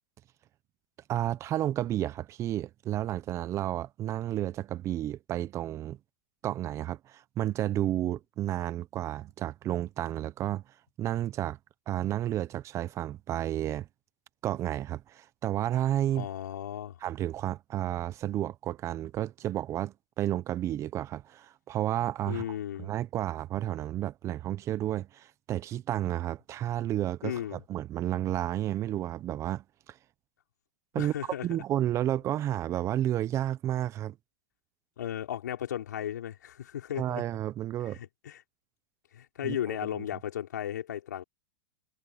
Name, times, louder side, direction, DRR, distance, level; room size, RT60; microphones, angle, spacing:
voice 1, 1.1-6.0 6.4-10.6 11.0-11.6 11.9-13.9 14.4-16.3 17.0-22.4 22.8-30.0 30.9-31.1 31.4-34.1 37.0-38.0 39.4-39.8, right 12 dB, 30° right, 1.0 m, -31 dB
voice 2, 16.1-17.0 22.3-22.9 27.2-27.6 30.9-31.5 35.0-37.2 37.8-38.4 39.1-41.2, left 10 dB, 80° left, 5.1 m, -35 dB
hypercardioid pair, 120°, 9 cm